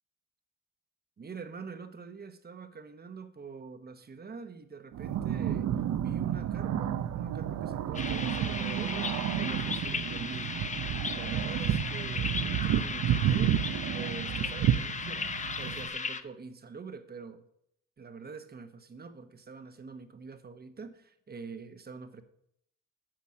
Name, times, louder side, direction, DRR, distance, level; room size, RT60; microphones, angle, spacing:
voice 1, 1.2-5.7 6.0-10.6 11.0-13.6 13.9-17.4 18.0-22.2, right 5 dB, 30° right, 1.0 m, -45 dB
sound 1, 4.9-15.9, right 10 dB, 65° right, 0.7 m, -31 dB
sound 2, 7.9-16.2, left 5 dB, 25° left, 0.6 m, -36 dB
8.8 x 5.9 x 6.3 m
cardioid pair, 90°, 30 cm